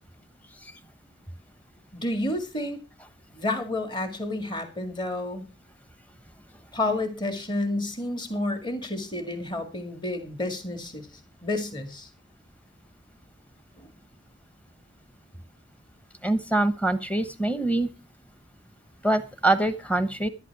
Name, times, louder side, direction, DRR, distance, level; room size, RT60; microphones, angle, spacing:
voice 1, 1.9-2.8 3.3-5.4 6.7-11.1 11.4-12.1 13.8-13.9, left 2 dB, 25° left, 8 dB, 2.0 m, -30 dB
voice 2, 16.2-17.9 19.0-20.3, right 2 dB, 10° left, 12 dB, 1.0 m, -24 dB
12.0 x 12.0 x 4.7 m, 0.30 s
head